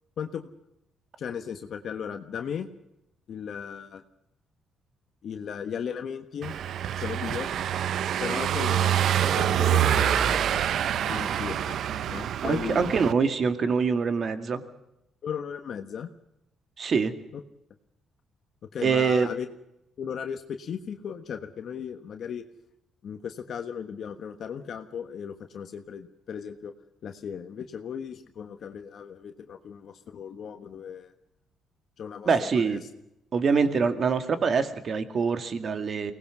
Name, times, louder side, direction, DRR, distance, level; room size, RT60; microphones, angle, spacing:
voice 1, 0.2-0.5 1.2-2.7 3.3-4.0 5.2-6.5 7.0-7.5 8.2-10.6 11.0-11.8 12.1-12.8 15.2-16.1 17.3-17.4 18.7-19.5 20.0-22.4 23.0-26.7 27.0-31.1 32.0-32.8, left 7 dB, 60° left, 7 dB, 1.3 m, -36 dB
Car passing by / Engine, 6.4-13.1, right 10 dB, 70° right, 0.6 m, -26 dB
voice 2, 12.4-14.6 16.8-17.1 18.8-19.3 32.3-32.8 33.3-36.1, right 5 dB, 50° right, 9 dB, 2.3 m, -24 dB
24.0 x 18.5 x 6.1 m, 0.85 s
cardioid pair, 90°, 0 cm